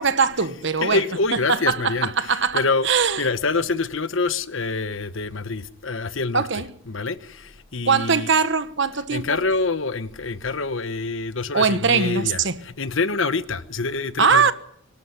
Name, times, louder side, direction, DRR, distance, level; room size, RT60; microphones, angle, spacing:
voice 1, 0.0-1.0 1.5-3.2 6.3-6.7 7.9-9.2 11.5-12.6 14.2-14.5, right 5 dB, 60° right, 1.3 m, -21 dB
voice 2, 0.8-2.9 3.2-6.5 6.9-8.3 9.1-14.5, left 3 dB, 65° left, 1.1 m, -26 dB
24.0 x 12.5 x 9.6 m
head